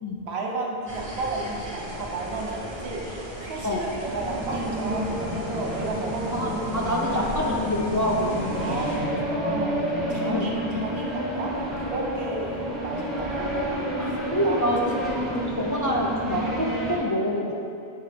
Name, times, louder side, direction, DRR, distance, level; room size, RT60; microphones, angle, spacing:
voice 1, 0.2-6.6 7.1-7.3 8.5-9.7 10.1-14.0 14.4-15.5, right 2 dB, 85° right, 0 dB, 1.1 m, -33 dB
sound 1, 0.9-9.0, right 1 dB, 25° right, 1.1 m, -37 dB
sound 2, 4.1-17.0, equal, ahead, 0.9 m, -30 dB
voice 2, 6.3-8.7 10.3-10.5 14.0-14.8 15.2-17.5, equal, 30° left, -3 dB, 0.3 m, -27 dB
7.6 x 3.3 x 5.0 m, 2.7 s
omnidirectional pair, 1.1 m